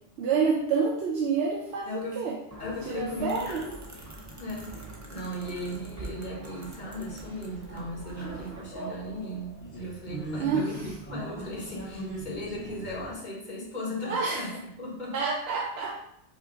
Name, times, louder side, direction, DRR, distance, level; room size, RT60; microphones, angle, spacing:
voice 1, 0.2-2.4 2.9-3.6 10.4-10.7 14.0-14.5 15.1-16.0, right 5 dB, 70° right, 0 dB, 0.8 m, -28 dB
voice 2, 1.8-2.3 2.6-3.8 4.4-15.2, left 1 dB, 45° left, -4 dB, 1.3 m, -37 dB
sound 1, 2.5-8.6, right 1 dB, 20° right, 0.5 m, -44 dB
sound 2, 8.0-13.1, right 2 dB, 75° left, 2.2 m, -40 dB
5.4 x 2.5 x 3.8 m, 0.75 s
omnidirectional pair, 1.2 m